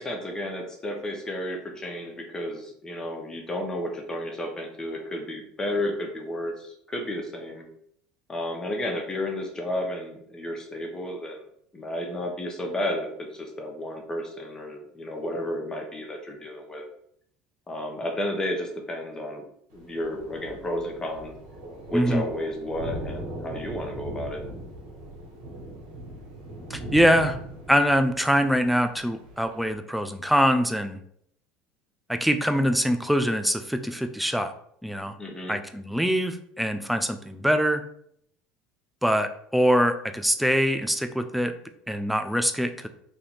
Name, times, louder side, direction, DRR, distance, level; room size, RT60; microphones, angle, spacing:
voice 1, 0.0-7.7 8.3-11.4 11.7-16.8 17.7-19.4 19.7-21.4 21.9-24.5 35.2-35.6, left 1 dB, 20° left, 2 dB, 1.1 m, -32 dB
Thunder, 19.7-29.7, right 1 dB, 75° right, 1.5 m, -39 dB
voice 2, 26.7-27.4 27.7-31.0 32.1-34.5 34.8-35.1 35.5-37.8 39.0-41.5 41.9-42.9, equal, ahead, 7 dB, 0.4 m, -23 dB
3.3 x 2.8 x 4.1 m, 0.68 s
supercardioid pair, 85°, 3 cm